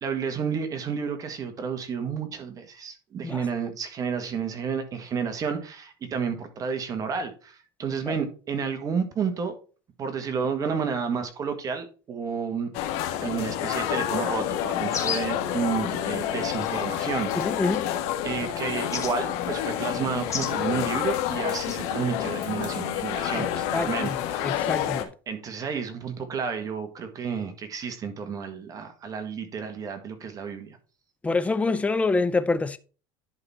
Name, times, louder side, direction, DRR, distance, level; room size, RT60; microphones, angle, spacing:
voice 1, 0.0-9.5 10.0-12.7 13.2-17.6 18.2-24.6 25.3-30.8, right 6 dB, 30° right, 1.6 m, -31 dB
sound 1, 12.7-25.0, left 11 dB, 65° left, 1.4 m, -29 dB
sound 2, 14.9-15.4 16.5-16.7 17.3-17.8 18.9-19.1 20.3-20.6 21.6-21.8, left 7 dB, 25° left, 1.7 m, -32 dB
voice 2, 17.3-17.9 23.3-23.4 23.7-24.2 24.4-25.1 31.2-32.8, left 3 dB, 10° left, 0.5 m, -26 dB
10.5 x 4.0 x 4.3 m
supercardioid pair, 135°, 12 cm